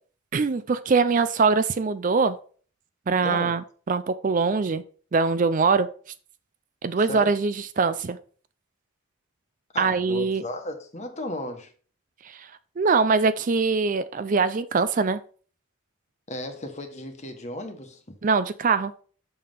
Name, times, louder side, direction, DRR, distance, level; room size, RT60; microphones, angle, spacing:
voice 1, 0.3-2.4 3.1-4.8 5.1-5.9 6.8-8.2 9.8-10.4 12.2-12.5 12.8-15.2 18.2-18.9, right 4 dB, 40° right, 0.4 m, -23 dB
voice 2, 3.2-3.5 7.0-7.3 9.7-11.7 16.3-18.1, left 1 dB, 35° left, 1.3 m, -35 dB
6.7 x 5.5 x 5.5 m
head